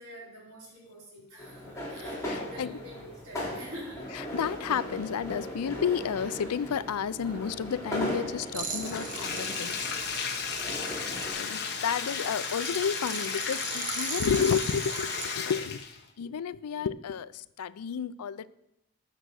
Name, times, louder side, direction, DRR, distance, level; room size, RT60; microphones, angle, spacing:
voice 1, 0.0-4.1 9.2-9.7 10.3-10.8, equal, 75° right, -5 dB, 4.0 m, -46 dB
sound 1, 1.4-11.3, left 1 dB, 15° left, 3.7 m, -38 dB
voice 2, 2.3-2.8 4.3-9.8 11.4-15.8 16.2-18.5, left 7 dB, 85° left, 17 dB, 0.4 m, -31 dB
sound 2, 8.5-15.3, right 5 dB, 35° right, 1.4 m, -39 dB
Bathtub (filling or washing), 8.8-16.1, left 6 dB, 45° left, 1.2 m, -34 dB
13.0 x 6.5 x 6.3 m, 0.86 s
head